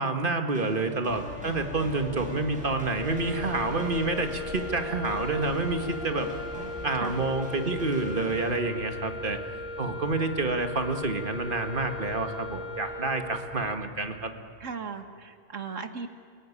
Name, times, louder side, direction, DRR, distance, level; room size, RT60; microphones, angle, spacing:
voice 1, 0.0-6.3 6.8-9.4 9.8-14.3, right 3 dB, 45° right, 6 dB, 1.9 m, -28 dB
sound 1, 0.5-8.5, equal, 5° right, 5.6 m, -43 dB
sound 2, 1.1-14.7, equal, 50° left, 4.7 m, -45 dB
sound 3, 2.7-13.6, left 3 dB, 20° left, 4.8 m, -39 dB
voice 2, 6.5-7.2 9.9-10.0 14.6-16.1, right 5 dB, 85° right, 8 dB, 2.0 m, -38 dB
30.0 x 17.5 x 9.8 m, 2.3 s
omnidirectional pair, 1.3 m